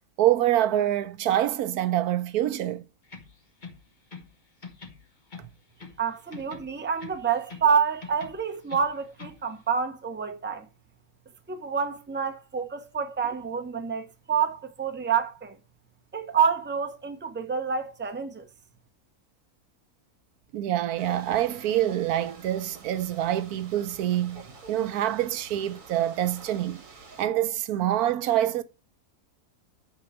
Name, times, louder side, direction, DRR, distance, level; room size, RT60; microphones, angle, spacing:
voice 1, 0.2-2.8 20.5-26.8 27.2-28.6, right 12 dB, 85° right, 1.2 m, -26 dB
sound 1, 3.0-4.4 4.6-6.0 6.3-7.7 8.0-9.4, left 5 dB, 35° left, 1.2 m, -45 dB
voice 2, 6.0-10.7 11.5-15.6 16.1-18.5, right 6 dB, 10° right, 0.6 m, -28 dB
sound 2, 21.0-27.2, right 4 dB, 60° right, 2.0 m, -48 dB
8.8 x 4.1 x 6.9 m
omnidirectional pair, 1.6 m